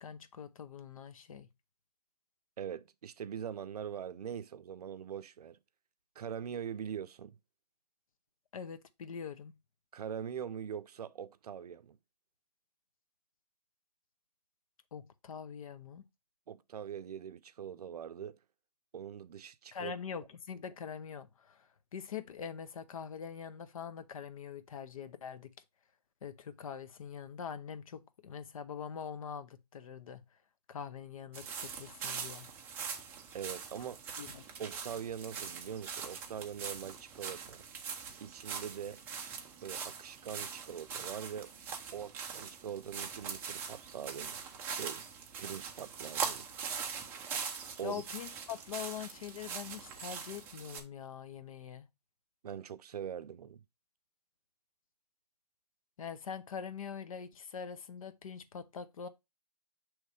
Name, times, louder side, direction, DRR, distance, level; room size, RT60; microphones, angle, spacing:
voice 1, 0.0-1.5 8.5-9.5 14.9-16.0 19.7-25.5 26.2-30.2 30.7-32.5 33.8-33.9 34.2-34.4 47.8-51.9 56.0-59.1, left 7 dB, 55° left, 0.7 m, -43 dB
voice 2, 2.6-5.6 6.2-7.4 9.9-12.0 16.5-18.4 18.9-19.9 33.3-34.0 34.6-37.6 38.2-39.0 39.6-41.5 41.9-44.4 44.7-45.0 45.4-46.5 47.8-48.0 52.4-53.6, right 8 dB, 65° right, 0.5 m, -42 dB
sound 1, 31.3-50.8, right 6 dB, 10° right, 0.4 m, -42 dB
6.4 x 3.2 x 4.8 m
hypercardioid pair, 150°, 21 cm